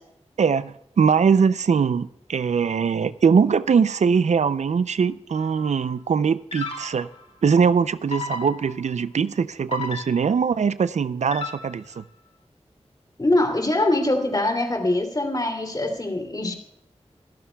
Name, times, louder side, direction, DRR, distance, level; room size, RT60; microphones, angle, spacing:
voice 1, 0.4-7.1 7.4-12.0, right 6 dB, 80° right, 0.4 m, -21 dB
sound 1, 5.4-5.7 6.5-7.2 8.1-9.0 9.7-10.5 11.3-12.0, left 3 dB, 60° left, 2.8 m, -34 dB
voice 2, 13.2-16.5, left 1 dB, 35° left, 2.8 m, -23 dB
25.0 x 12.5 x 2.3 m
wide cardioid pair, 50°, 12 cm